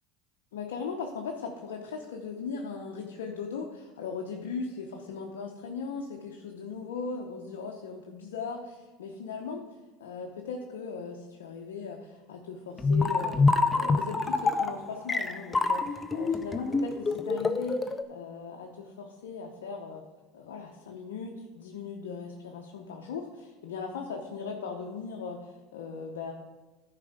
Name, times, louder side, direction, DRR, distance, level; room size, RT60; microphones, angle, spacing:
voice 1, 0.5-9.6 10.0-20.0 20.3-26.3, left 5 dB, 85° left, 1 dB, 0.9 m, -38 dB
sound 1, 12.8-18.0, left 3 dB, 20° left, 0.6 m, -26 dB
11.0 x 5.0 x 5.1 m, 1.2 s
supercardioid pair, 95°, 0 cm